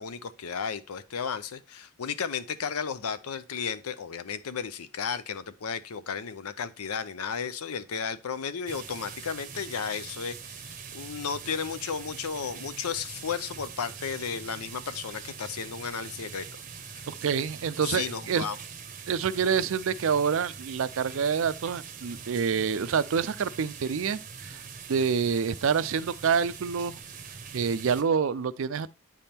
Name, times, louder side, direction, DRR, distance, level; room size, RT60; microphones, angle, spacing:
voice 1, 0.0-16.5 17.0-17.1 17.8-18.6, left 6 dB, 85° left, 0.6 m, -34 dB
sound 1, 8.7-28.0, right 6 dB, 35° right, 0.7 m, -43 dB
voice 2, 17.1-18.5 19.1-24.6 24.9-27.0 27.5-28.9, right 6 dB, 65° right, 0.4 m, -27 dB
8.9 x 3.5 x 4.3 m
head